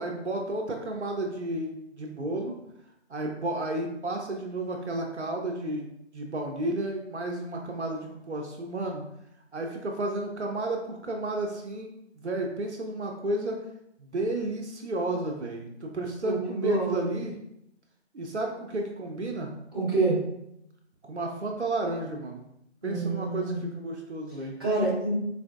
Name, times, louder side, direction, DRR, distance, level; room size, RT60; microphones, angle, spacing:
voice 1, 0.0-2.5 3.1-5.9 6.1-9.0 9.5-13.6 14.0-17.3 18.1-19.5 21.0-22.5 22.8-23.5 23.8-24.5, right 2 dB, 75° right, 1 dB, 0.6 m, -32 dB
voice 2, 16.2-17.1 19.7-20.2 22.8-23.6 24.6-25.1, right 3 dB, 20° right, -11 dB, 0.9 m, -27 dB
3.9 x 2.5 x 2.3 m, 0.78 s
figure-of-eight pair, 165°, 35 cm